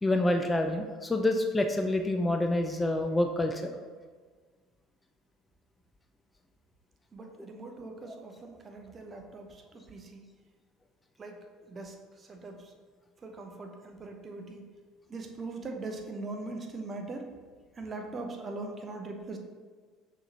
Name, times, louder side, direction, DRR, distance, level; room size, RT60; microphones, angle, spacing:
voice 1, 0.0-3.8 8.0-8.2, left 1 dB, 15° left, 4 dB, 0.3 m, -27 dB
voice 2, 7.1-9.5 9.7-10.3 11.2-11.3 11.7-11.9 12.3-12.6 13.2-14.6 15.1-17.2 17.8-19.4, right 3 dB, 30° right, 3 dB, 0.6 m, -41 dB
5.7 x 3.1 x 2.7 m, 1.5 s
figure-of-eight pair, 60°, 0 cm